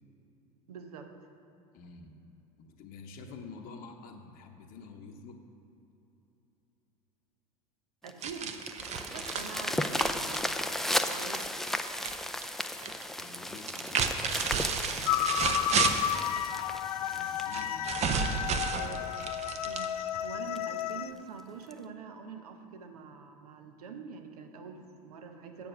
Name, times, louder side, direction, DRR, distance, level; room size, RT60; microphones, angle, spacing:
voice 1, 0.7-1.1 8.0-8.6 9.1-10.6 10.9-11.4 18.6-19.1 19.6-25.7, right 5 dB, 75° right, 6 dB, 0.9 m, -45 dB
voice 2, 1.7-2.2 2.6-5.4 13.2-16.2 17.0-18.9, left 3 dB, 50° left, 3 dB, 0.8 m, -49 dB
sound 1, 8.1-18.5 19.1-19.2 19.7-19.8 20.1-20.2 20.6-20.8 21.7-21.8, left 1 dB, ahead, 0.4 m, -35 dB
sound 2, 8.2-12.2 12.4-13.0 13.6-16.3 17.5-20.2, right 6 dB, 35° right, 0.7 m, -32 dB
sound 3, 15.1-21.1, left 11 dB, 75° left, 0.4 m, -32 dB
6.9 x 6.9 x 6.1 m, 3.0 s
hypercardioid pair, 80°, 19 cm